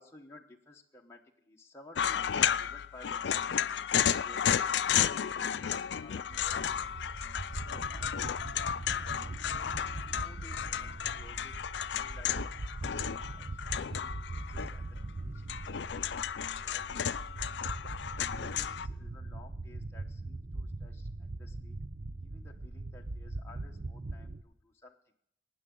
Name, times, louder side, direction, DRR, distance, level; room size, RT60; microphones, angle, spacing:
voice 1, 0.0-3.7 4.1-7.1 7.5-9.6 10.2-11.5 12.0-12.3 12.7-12.8 13.1-13.5 13.8-15.6 16.6-17.1 18.3-21.8 22.2-25.0, left 2 dB, 15° left, 0 dB, 1.0 m, -56 dB
sound 1, 1.9-15.0 15.4-18.9, left 9 dB, 75° left, 0.4 m, -33 dB
sound 2, 6.3-24.4, right 2 dB, 40° right, 0.6 m, -41 dB
19.5 x 9.3 x 3.8 m, 0.73 s
head